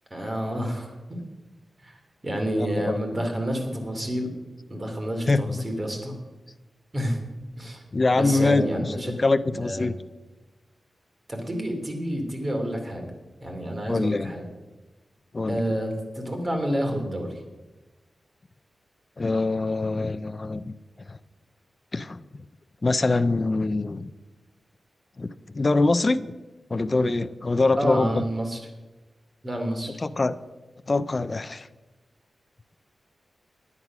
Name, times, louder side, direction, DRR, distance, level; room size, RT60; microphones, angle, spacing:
voice 1, 0.1-1.2 1.8-2.0 2.2-4.3 4.7-6.1 6.9-7.2 7.6-7.8 8.1-9.1 9.5-9.9 11.3-13.1 13.4-14.4 15.5-17.4 27.8-28.6 29.4-29.9, equal, 30° right, 3 dB, 2.8 m, -29 dB
voice 2, 2.6-3.0 5.3-5.7 7.9-10.0 13.9-14.3 15.3-15.6 19.2-20.8 21.1-21.2 21.9-22.2 22.8-24.1 25.2-26.3 26.7-28.2 30.0-30.4 30.9-31.7, left 3 dB, 35° left, 12 dB, 0.6 m, -24 dB
10.0 x 9.8 x 6.0 m, 1.1 s
wide cardioid pair, 80°, 0 cm